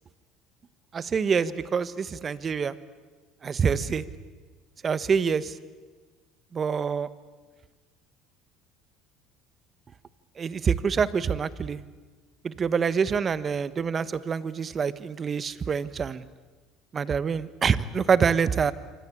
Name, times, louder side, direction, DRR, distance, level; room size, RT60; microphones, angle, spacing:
voice 1, 0.9-2.7 3.4-4.0 4.8-5.5 6.5-7.1 10.4-11.8 12.4-16.2 16.9-18.7, right 6 dB, 35° right, 15 dB, 1.4 m, -26 dB
27.5 x 25.0 x 8.7 m, 1.3 s
supercardioid pair, 105°, 0 cm